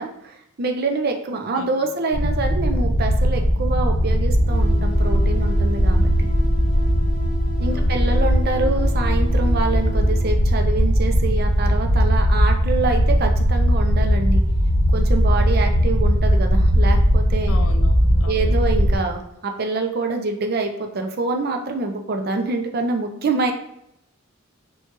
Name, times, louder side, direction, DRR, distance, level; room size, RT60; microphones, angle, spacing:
voice 1, 0.0-6.1 7.6-14.4 14.9-17.6 18.3-23.5, right 3 dB, 45° right, 4 dB, 0.5 m, -26 dB
voice 2, 1.6-1.9 7.7-7.9 17.5-18.6, left 3 dB, 75° left, 8 dB, 0.4 m, -37 dB
sound 1, 2.1-18.9, equal, 65° right, 1.3 m, -18 dB
sound 2, 4.5-10.2, left 2 dB, 40° left, 0.8 m, -31 dB
4.3 x 2.3 x 2.9 m, 0.79 s
head